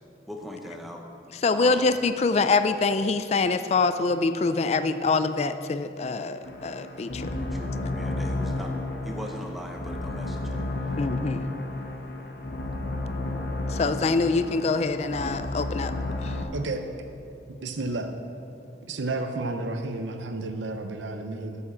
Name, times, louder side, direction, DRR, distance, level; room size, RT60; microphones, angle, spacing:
voice 1, 0.3-1.0 1.5-1.8 7.4-8.7 9.0-10.6 10.9-11.0, equal, ahead, 1 dB, 0.9 m, -39 dB
voice 2, 1.4-7.3 11.0-11.4 13.7-15.9 16.2-16.4, left 3 dB, 35° left, 11 dB, 0.3 m, -25 dB
sound 1, 6.4-16.4, left 2 dB, 60° left, 1.0 m, -32 dB
voice 3, 17.6-18.1 18.9-21.6, right 2 dB, 85° right, 6 dB, 0.7 m, -31 dB
8.4 x 7.2 x 7.2 m, 2.5 s
head